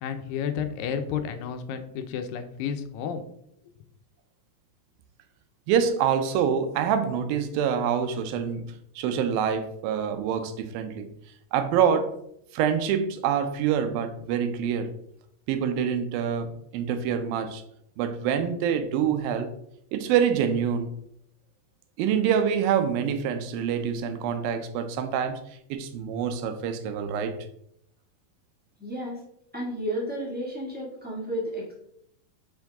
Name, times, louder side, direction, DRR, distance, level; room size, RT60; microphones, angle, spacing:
voice 1, 0.0-3.2, left 7 dB, 80° left, 2.3 m, -31 dB
voice 2, 5.7-8.7 9.0-11.1 11.5-12.1 12.5-14.9 15.5-17.6 18.0-19.5 19.9-20.9 22.0-25.4 25.7-27.3, right 8 dB, 90° right, 2.5 m, -26 dB
voice 3, 28.8-29.2 29.5-31.7, equal, 10° right, 0.4 m, -32 dB
6.2 x 5.3 x 3.5 m
omnidirectional pair, 4.1 m